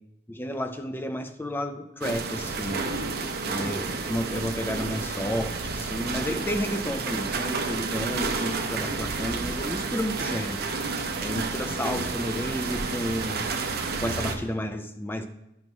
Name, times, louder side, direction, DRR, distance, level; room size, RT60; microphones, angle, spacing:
voice 1, 0.3-13.5 14.0-15.2, equal, 10° left, 8 dB, 0.4 m, -32 dB
sound 1, 2.0-14.4, right 4 dB, 55° right, 0.7 m, -30 dB
10.5 x 5.3 x 3.1 m, 0.85 s
head